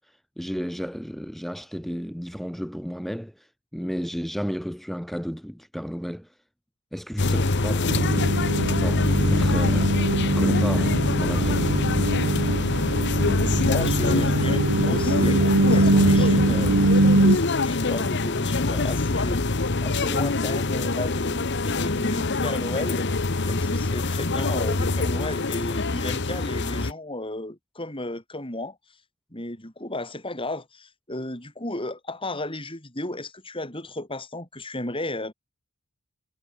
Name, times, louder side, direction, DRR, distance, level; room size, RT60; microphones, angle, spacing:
voice 1, 0.1-6.4 6.9-8.2 8.6-11.7, equal, ahead, 2.4 m, -33 dB
sound 1, 7.2-26.9, left 3 dB, 50° left, 1.2 m, -24 dB
sound 2, 7.9-17.4, right 2 dB, 80° right, 1.7 m, -22 dB
voice 2, 13.6-23.1 23.4-28.8 29.3-35.3, left 1 dB, 25° left, 6.1 m, -33 dB
head